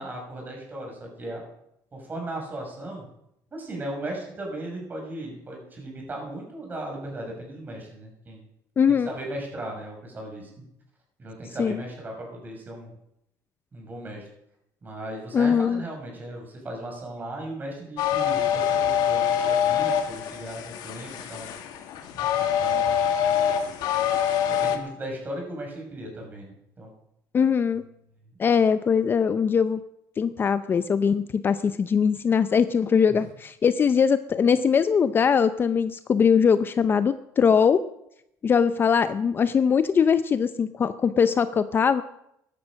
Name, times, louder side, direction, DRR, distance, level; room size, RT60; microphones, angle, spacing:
voice 1, 0.0-1.4 1.9-3.1 3.5-8.4 8.9-10.6 11.2-12.9 13.7-14.3 14.8-21.7 22.2-23.8 24.5-26.9 33.1-33.3, right 1 dB, 25° right, 0 dB, 6.2 m, -37 dB
voice 2, 8.8-9.1 11.6-11.8 15.3-15.8 27.3-27.8 28.4-29.8 30.2-37.8 38.4-42.0, left 6 dB, 30° left, 13 dB, 0.5 m, -21 dB
sound 1, 18.0-24.8, left 9 dB, 75° left, 1.9 m, -25 dB
14.0 x 12.0 x 6.3 m, 0.79 s
cardioid pair, 135°, 7 cm